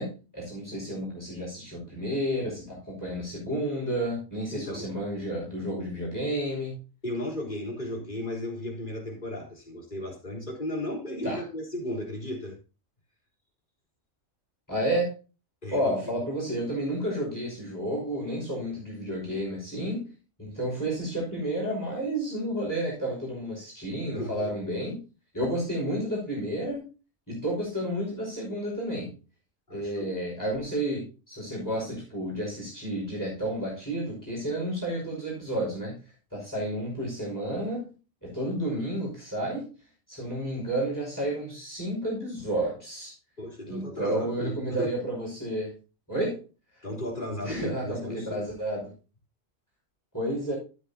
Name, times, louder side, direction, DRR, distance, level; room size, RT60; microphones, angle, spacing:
voice 1, 0.0-6.8 11.2-11.4 14.7-15.1 15.7-20.1 20.4-25.0 25.3-26.9 27.3-29.1 29.7-35.9 36.3-37.9 38.2-39.7 40.1-43.1 43.7-45.8 46.1-46.4 47.4-48.9 50.1-50.5, right 1 dB, 15° left, -4 dB, 5.5 m, -31 dB
voice 2, 4.5-4.9 7.0-12.6 15.6-16.3 24.1-24.5 29.7-30.2 43.4-44.9 46.8-48.4, left 1 dB, 40° left, -2 dB, 3.9 m, -35 dB
12.5 x 10.0 x 2.8 m, 0.33 s
omnidirectional pair, 1.3 m